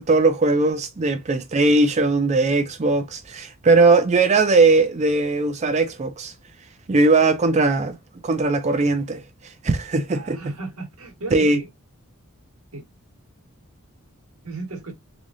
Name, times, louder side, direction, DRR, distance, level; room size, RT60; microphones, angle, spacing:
voice 1, 0.0-6.3 6.9-8.0 8.2-10.4 11.3-11.6, right 3 dB, 30° right, 0.4 m, -19 dB
voice 2, 10.1-11.7 12.7-12.8 14.4-14.9, right 3 dB, 85° right, 1.6 m, -35 dB
3.6 x 3.4 x 2.5 m
head